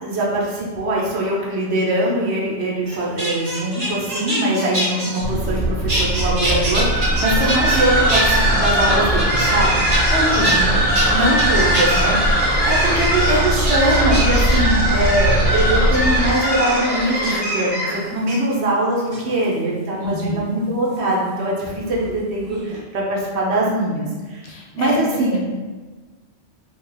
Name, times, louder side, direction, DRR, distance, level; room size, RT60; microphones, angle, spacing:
voice 1, 0.0-10.1 10.5-10.8 11.1-24.5 24.7-25.4, right 1 dB, 65° right, -4 dB, 0.9 m, -22 dB
sound 1, 2.9-5.6 5.9-7.8 8.1-9.6 9.9-10.6 10.9-11.0 11.4-12.1 12.5-12.8 13.2-13.3 13.6-14.7 15.6-16.0 17.2-17.5 18.2-18.4 19.0-19.5 20.9-22.1 22.4-22.8, right 1 dB, 40° right, 0.7 m, -26 dB
sound 2, 5.2-16.3, right 1 dB, 5° right, 1.0 m, -22 dB
sound 3, 6.7-18.1, right 1 dB, 10° left, 0.5 m, -20 dB
voice 2, 10.1-10.5 20.0-20.4 24.4-25.4, left 1 dB, 70° left, -1 dB, 0.8 m, -26 dB
2.9 x 2.2 x 3.2 m, 1.3 s
omnidirectional pair, 1.2 m